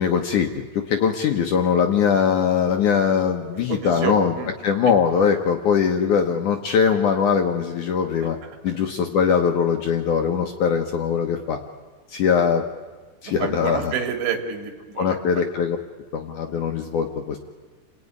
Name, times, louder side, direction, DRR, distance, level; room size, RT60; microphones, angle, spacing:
voice 1, 0.0-4.3 4.6-8.4 8.6-11.6 12.1-12.6 13.2-13.9 15.0-15.8 16.1-17.4, left 7 dB, 65° left, 3 dB, 2.1 m, -21 dB
voice 2, 3.7-4.5 4.9-5.0 8.7-8.8 13.2-15.2, right 7 dB, 85° right, 4 dB, 4.6 m, -28 dB
29.0 x 19.0 x 9.6 m, 1.4 s
omnidirectional pair, 4.9 m